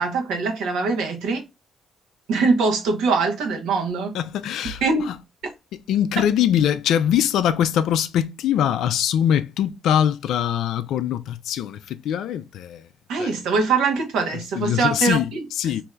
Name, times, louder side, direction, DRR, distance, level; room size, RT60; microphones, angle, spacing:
voice 1, 0.0-1.4 2.3-4.1 4.8-5.1 13.1-15.4, right 4 dB, 85° right, 0.8 m, -22 dB
voice 2, 4.1-5.2 5.7-12.9 13.2-13.4 14.5-15.8, left 10 dB, 80° left, 0.3 m, -23 dB
3.2 x 2.6 x 2.2 m
cardioid pair, 90°, 0 cm